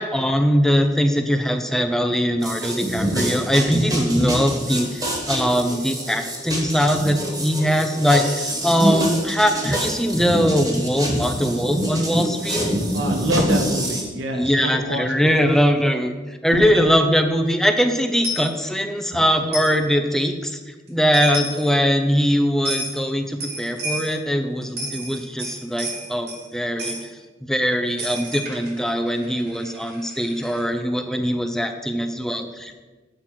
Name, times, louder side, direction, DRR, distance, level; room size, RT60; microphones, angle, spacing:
voice 1, 0.0-12.6 14.3-16.1 16.4-20.6 20.9-27.0 27.4-32.8, equal, 5° left, 6 dB, 0.5 m, -21 dB
sound 1, 2.4-14.0, equal, 20° right, 1.5 m, -25 dB
voice 2, 12.9-15.1 16.6-16.8, equal, 90° right, 3 dB, 0.8 m, -25 dB
Coin (dropping), 18.2-18.5 19.5-19.8 20.9-21.0 21.1-21.7 22.6-23.0 23.4-24.2 24.6-26.5 26.8-27.0 28.0-30.6, right 1 dB, 70° right, 2.3 m, -31 dB
7.7 x 4.3 x 5.9 m, 1.3 s
head